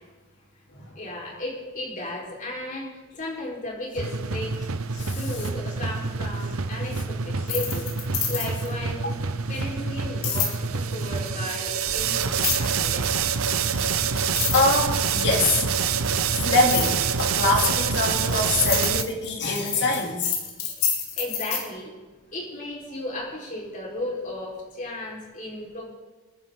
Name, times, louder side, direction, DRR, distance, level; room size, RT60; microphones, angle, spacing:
voice 1, 1.0-4.6 5.1-7.9 8.3-9.2 9.5-13.1 20.6-20.7 21.2-21.9 22.3-25.8, left 1 dB, 35° left, -3 dB, 4.4 m, -34 dB
sound 1, 4.0-19.0, right 6 dB, 70° right, 0.8 m, -26 dB
sound 2, 7.4-8.7 10.2-10.5 12.3-12.8 13.7-13.8 14.2-15.3 16.7-17.0 17.8-21.6, left 7 dB, 70° left, 3.8 m, -27 dB
voice 2, 14.1-15.6 16.4-20.3, left 3 dB, 55° left, 0 dB, 3.0 m, -24 dB
27.0 x 10.0 x 3.8 m, 1.3 s
head